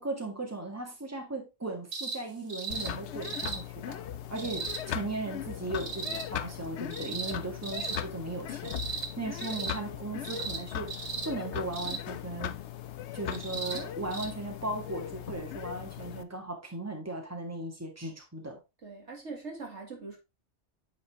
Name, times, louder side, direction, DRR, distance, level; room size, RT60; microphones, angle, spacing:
voice 1, 0.0-12.5 13.1-18.6, right 2 dB, 15° right, 1.9 m, -37 dB
sound 1, 1.9-2.2 2.5-2.9 3.2-3.6 4.4-4.8 5.7-6.2 6.9-7.3 7.6-8.0 8.6-9.1 9.4-9.7 10.2-10.6 10.9-11.3 11.7-12.0 13.3-13.8 14.1-14.3 15.3-15.4, right 4 dB, 50° right, 1.5 m, -36 dB
sound 2, 2.7-16.2, left 10 dB, 80° left, 0.9 m, -39 dB
voice 2, 18.8-20.2, right 3 dB, 85° right, 2.5 m, -42 dB
8.8 x 4.1 x 3.6 m
omnidirectional pair, 1.2 m